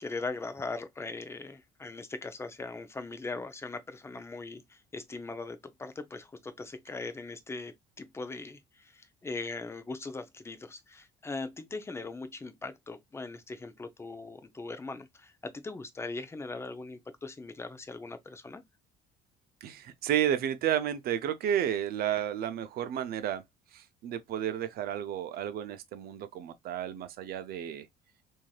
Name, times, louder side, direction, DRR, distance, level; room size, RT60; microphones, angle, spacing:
voice 1, 0.0-18.6, left 3 dB, 15° left, 0.5 m, -40 dB
voice 2, 19.6-23.4 23.7-27.9, right 10 dB, 65° right, 0.6 m, -32 dB
3.1 x 2.7 x 2.3 m
cardioid pair, 110°, 17 cm